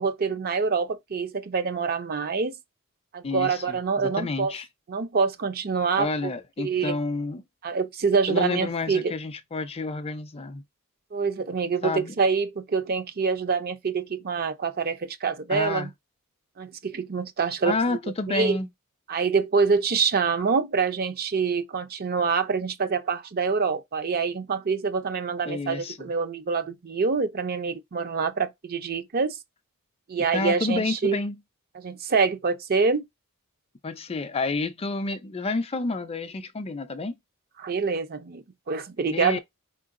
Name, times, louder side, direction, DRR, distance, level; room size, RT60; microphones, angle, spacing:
voice 1, 0.0-2.5 3.1-4.5 4.9-6.3 6.6-7.0 7.6-9.1 11.1-15.9 16.6-17.8 18.3-18.6 19.1-29.4 30.1-31.2 31.8-33.0 37.6-39.4, right 5 dB, 45° right, 0.6 m, -26 dB
voice 2, 3.2-4.7 6.0-7.4 8.3-10.6 11.8-12.1 15.5-15.9 17.6-18.7 25.5-26.1 30.3-31.4 33.8-37.2 39.1-39.4, left 3 dB, 25° left, 0.5 m, -29 dB
4.6 x 3.7 x 2.5 m
head